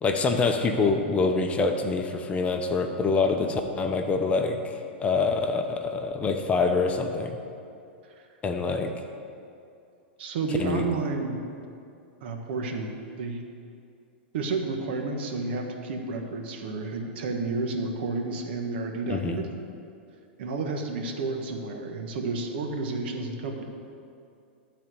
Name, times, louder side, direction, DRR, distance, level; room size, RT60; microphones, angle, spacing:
voice 1, 0.0-7.3 8.4-8.9 10.5-10.9 19.1-19.4, left 4 dB, 20° left, 4 dB, 0.9 m, -25 dB
voice 2, 10.2-11.4 12.2-13.4 14.3-19.5 20.4-23.6, right 3 dB, 65° right, 3 dB, 1.4 m, -31 dB
12.5 x 4.3 x 7.9 m, 2.5 s
hypercardioid pair, 120°, 6 cm